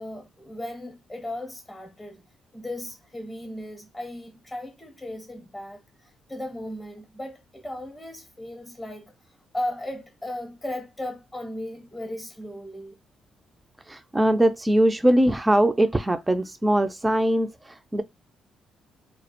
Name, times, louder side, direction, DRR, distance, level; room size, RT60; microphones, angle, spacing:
voice 1, 0.0-2.2 2.5-9.1 9.5-13.0, left 1 dB, 15° left, 0.7 m, -36 dB
voice 2, 13.9-18.0, right 1 dB, 15° right, 0.4 m, -21 dB
2.3 x 2.0 x 2.8 m
cardioid pair, 90°, 0 cm